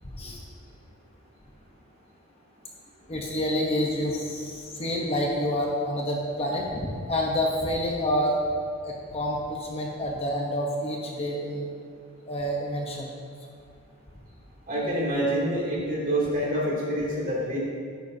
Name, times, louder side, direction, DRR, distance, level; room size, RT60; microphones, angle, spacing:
voice 1, 0.0-0.4 3.1-8.4 8.8-11.7 12.3-13.1, equal, 25° left, -1 dB, 0.8 m, -28 dB
voice 2, 14.7-17.6, right 1 dB, 40° right, -6 dB, 2.6 m, -26 dB
11.5 x 9.9 x 2.7 m, 2.2 s
head